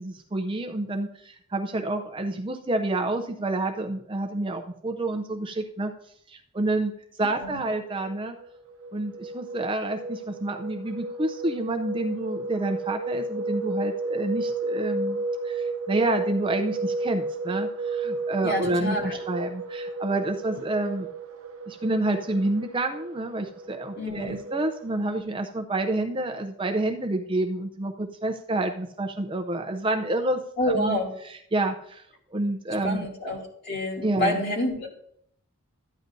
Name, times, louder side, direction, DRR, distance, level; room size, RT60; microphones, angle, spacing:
voice 1, 0.0-5.9 6.3-6.9 7.2-8.4 8.9-21.1 21.7-30.4 30.7-32.0 32.3-33.1 34.0-34.4, right 2 dB, 20° right, 5 dB, 0.5 m, -28 dB
sound 1, 7.5-25.2, right 2 dB, 70° right, 0.7 m, -33 dB
voice 2, 18.4-19.2 24.0-24.4 30.6-31.1 32.8-33.4 33.6-34.9, left 1 dB, 45° left, -1 dB, 2.7 m, -28 dB
13.0 x 9.6 x 2.6 m, 0.68 s
head